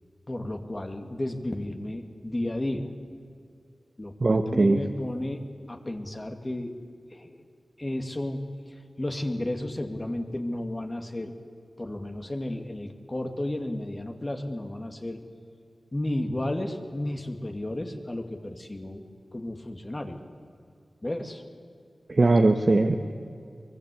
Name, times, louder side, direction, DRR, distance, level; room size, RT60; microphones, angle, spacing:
voice 1, 0.3-2.9 4.0-6.7 7.1-7.4 7.8-8.4 9.0-11.4 11.8-15.2 15.9-19.0 19.3-20.2 21.0-21.4, left 1 dB, 30° left, 4 dB, 2.2 m, -33 dB
voice 2, 4.2-4.8 22.1-23.0, right 2 dB, 50° right, 4 dB, 1.3 m, -20 dB
24.0 x 21.5 x 8.4 m, 2.4 s
wide cardioid pair, 80°, 0 cm